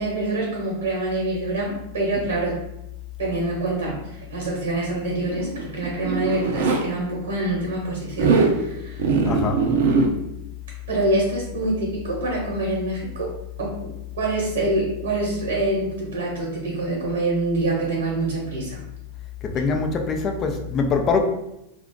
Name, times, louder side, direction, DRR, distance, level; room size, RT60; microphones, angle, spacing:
voice 1, 0.0-2.6 3.2-9.1 10.9-13.3 13.6-18.8, right 2 dB, 90° right, -3 dB, 1.0 m, -26 dB
Zipper (clothing), 5.2-6.8 8.1-8.6 9.0-10.1, right 4 dB, 70° right, 0.5 m, -21 dB
voice 2, 9.3-10.0 19.5-21.2, left 4 dB, 30° left, 4 dB, 0.4 m, -23 dB
2.4 x 2.3 x 3.7 m, 0.86 s
hypercardioid pair, 120°, 0 cm